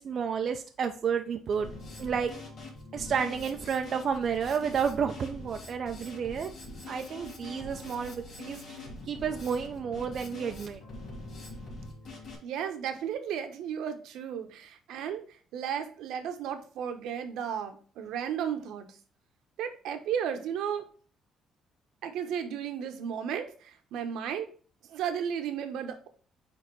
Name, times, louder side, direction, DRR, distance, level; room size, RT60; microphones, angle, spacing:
voice 1, 0.0-1.7 2.0-2.3 2.9-6.5 6.9-8.8 9.1-10.8, right 7 dB, 45° right, 5 dB, 0.5 m, -31 dB
Drum kit, 1.5-12.3, left 2 dB, 55° left, 2.6 m, -44 dB
voice 2, 12.4-15.2 15.5-18.9 19.6-20.8 22.0-24.5 24.9-26.1, right 8 dB, 80° right, 7 dB, 1.0 m, -34 dB
8.9 x 3.4 x 3.1 m, 0.41 s
cardioid pair, 125°, 0 cm